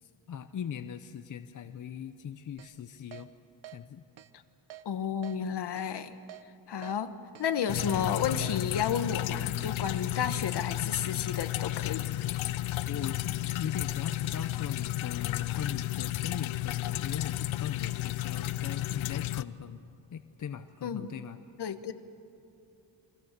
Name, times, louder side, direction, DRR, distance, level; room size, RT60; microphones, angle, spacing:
voice 1, 0.0-3.3 3.7-4.0 12.9-19.9 20.1-21.4, left 8 dB, 40° left, 10 dB, 0.7 m, -39 dB
Keyboard (musical), 2.6-2.7 3.1-3.3 3.6-3.8 4.2-4.3 4.7-4.8 5.2-5.4 5.8-5.9 6.3-6.4 6.8-7.0 7.4-7.5 7.9-8.0 8.4-8.6, right 13 dB, 70° right, 1.1 m, -47 dB
voice 2, 4.8-6.1 6.7-7.1 7.4-12.1 20.8-21.1 21.6-21.9, left 8 dB, 55° left, 10 dB, 1.3 m, -32 dB
sound 1, 7.7-19.4, left 15 dB, 80° left, 0.7 m, -33 dB
30.0 x 23.0 x 6.7 m, 2.7 s
wide cardioid pair, 145°, 47 cm